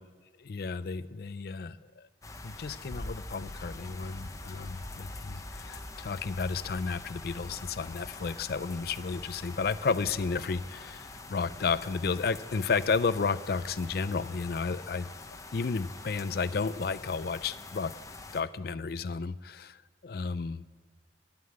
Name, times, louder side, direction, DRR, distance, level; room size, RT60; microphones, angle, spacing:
voice 1, 0.4-2.1 2.4-15.1 15.5-17.9 18.3-19.8 20.0-20.6, left 4 dB, 55° left, 16 dB, 0.5 m, -32 dB
sound 1, 2.2-18.4, left 2 dB, 20° left, 0.7 m, -44 dB
sound 2, 3.8-18.2, right 1 dB, 90° right, 2.8 m, -61 dB
11.5 x 9.5 x 8.6 m, 1.4 s
head